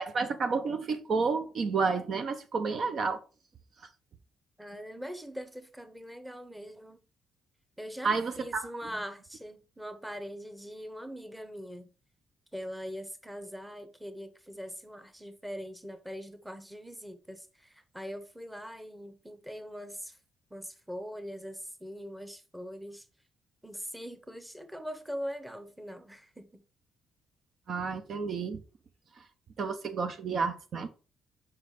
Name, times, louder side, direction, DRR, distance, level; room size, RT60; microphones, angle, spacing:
voice 1, 0.0-3.2 8.0-8.7 27.7-28.6 29.2-29.3 29.6-30.9, right 4 dB, 55° right, 0.8 m, -30 dB
voice 2, 4.6-7.0 7.8-11.9 12.5-20.2 20.5-23.1 23.6-26.6, equal, 5° right, 1.0 m, -42 dB
5.6 x 4.0 x 4.9 m
cardioid pair, 90°, 0 cm